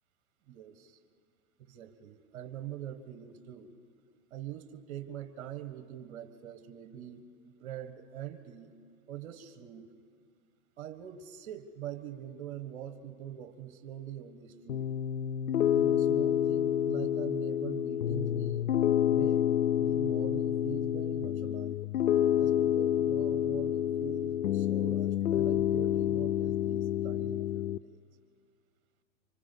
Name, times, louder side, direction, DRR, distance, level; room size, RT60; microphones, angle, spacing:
voice 1, 0.5-1.0 1.6-3.7 4.3-8.7 9.1-9.9 10.8-14.9 15.7-18.7 19.1-19.5 19.8-21.8 22.4-28.0, right 11 dB, 50° right, 9 dB, 1.5 m, -44 dB
Piano, 14.7-27.8, left 10 dB, 90° left, 0.5 m, -28 dB
28.0 x 25.0 x 5.4 m, 2.3 s
hypercardioid pair, 110°, 41 cm